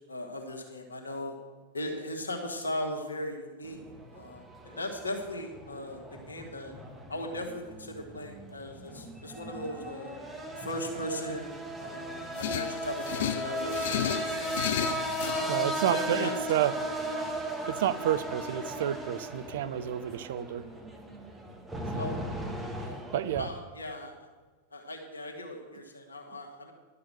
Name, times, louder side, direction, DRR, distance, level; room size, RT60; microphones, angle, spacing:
voice 1, 0.1-1.4 1.7-3.8 4.1-6.7 7.1-10.2 10.6-14.6 15.2-16.7 21.9-22.2 22.8-23.0 23.4-24.3 24.7-26.7, left 1 dB, 75° left, 2 dB, 1.6 m, -38 dB
sound 1, 3.6-23.4, right 1 dB, 10° right, 1.5 m, -37 dB
sound 2, 12.4-15.5, left 11 dB, 55° left, 0.4 m, -33 dB
voice 2, 15.5-16.7 17.7-20.7 21.9-22.1 23.1-23.5, right 11 dB, 55° right, 13 dB, 0.5 m, -30 dB
11.0 x 6.7 x 7.6 m, 1.3 s
figure-of-eight pair, 90°, 0 cm